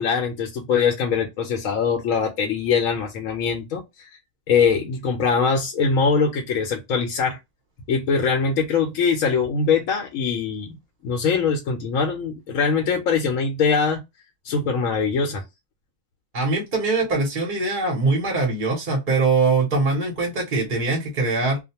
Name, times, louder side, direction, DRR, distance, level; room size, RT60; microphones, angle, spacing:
voice 1, 0.0-4.1 4.5-7.4 7.9-10.8 11.0-14.0 14.4-15.4, left 5 dB, 80° left, 1.0 m, -22 dB
voice 2, 16.3-21.6, right 3 dB, 40° right, 1.0 m, -22 dB
2.5 x 2.2 x 2.8 m
omnidirectional pair, 1.4 m